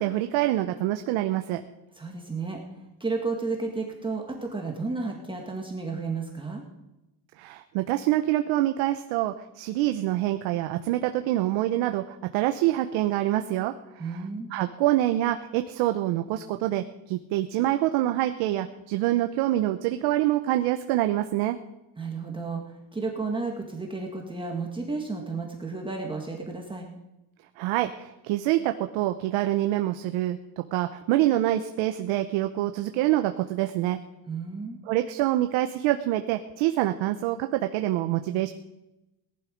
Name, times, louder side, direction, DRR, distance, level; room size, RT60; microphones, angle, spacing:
voice 1, 0.0-1.6 7.4-14.2 14.5-21.6 27.6-34.0 34.9-38.5, right 14 dB, 85° right, 7 dB, 1.0 m, -26 dB
voice 2, 2.0-6.6 14.0-14.5 22.0-26.9 34.3-34.8, right 3 dB, 10° right, 0 dB, 1.8 m, -32 dB
18.0 x 12.0 x 5.2 m, 0.93 s
cardioid pair, 155°, 46 cm